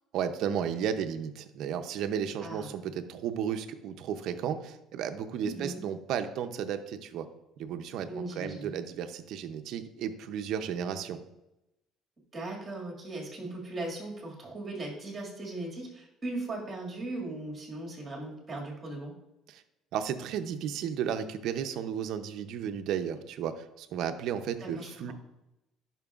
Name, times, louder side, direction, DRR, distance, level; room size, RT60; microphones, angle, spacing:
voice 1, 0.1-7.3 7.6-11.2 19.5-19.6 19.9-25.1, right 8 dB, 65° right, 8 dB, 0.6 m, -33 dB
voice 2, 2.4-2.7 5.5-5.8 8.1-8.7 12.3-19.1 24.6-25.1, right 2 dB, 20° right, -2 dB, 2.0 m, -38 dB
10.5 x 5.8 x 2.4 m, 0.93 s
cardioid pair, 140°, 0 cm